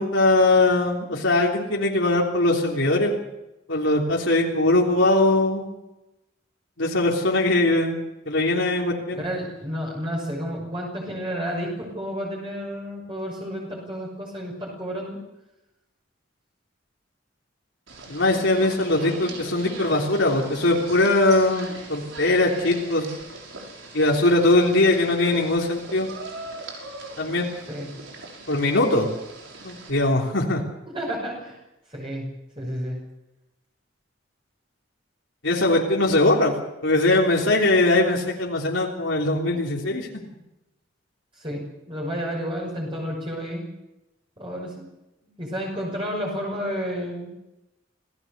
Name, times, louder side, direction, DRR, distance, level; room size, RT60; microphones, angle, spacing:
voice 1, 0.0-3.1 3.7-5.7 6.8-9.2 18.1-23.1 23.9-26.1 27.2-27.5 28.5-29.1 29.6-30.6 35.4-36.6 36.8-40.1, left 2 dB, 70° left, -2 dB, 3.4 m, -21 dB
voice 2, 9.1-15.2 27.7-27.9 30.9-31.6 31.9-32.3 32.6-33.0 41.3-41.6 41.9-43.7 44.4-44.9 45.4-47.3, equal, 25° right, -2 dB, 6.1 m, -31 dB
sound 1, 17.9-29.9, right 2 dB, 75° right, 5.9 m, -40 dB
27.5 x 17.0 x 6.7 m, 0.95 s
head